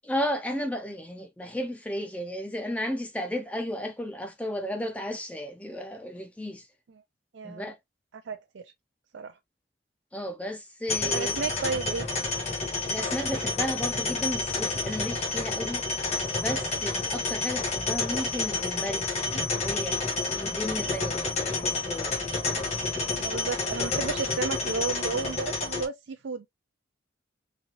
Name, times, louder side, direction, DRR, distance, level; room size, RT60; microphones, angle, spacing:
voice 1, 0.0-6.7 7.4-7.8 10.1-11.4 12.9-15.8 16.1-19.1 19.5-22.1, equal, 5° left, 0.5 m, -34 dB
voice 2, 7.3-7.7 8.3-8.6 9.1-9.3 11.0-12.1 23.2-26.5, right 4 dB, 80° right, 0.4 m, -32 dB
sound 1, 10.9-25.8, left 3 dB, 35° left, 1.2 m, -29 dB
4.0 x 2.8 x 2.8 m
head